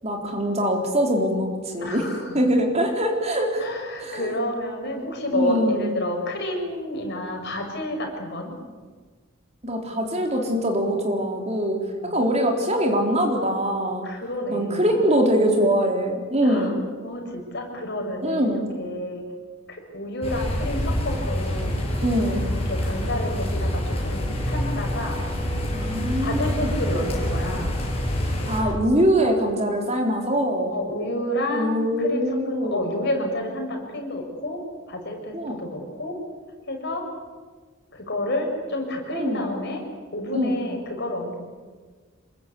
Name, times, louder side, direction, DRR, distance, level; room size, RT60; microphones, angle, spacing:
voice 1, 0.0-2.1 2.3-3.6 4.0-4.3 5.3-5.9 9.6-11.8 12.1-14.1 14.5-16.8 18.2-18.7 22.0-22.5 25.7-26.7 28.2-30.7 31.5-32.8 35.3-35.7 39.1-39.5 40.3-40.6, equal, 30° right, 2 dB, 3.9 m, -23 dB
voice 2, 1.8-2.5 3.6-8.5 12.0-12.1 14.0-14.9 16.4-16.7 17.0-19.2 19.7-21.8 22.6-25.2 26.2-27.7 30.7-34.6 34.9-36.2 36.7-37.0 37.9-39.8 40.1-41.4, left 1 dB, 55° left, 2 dB, 6.6 m, -30 dB
sound 1, 20.2-28.6, equal, 30° left, 6.9 m, -26 dB
27.0 x 22.5 x 8.6 m, 1.5 s
head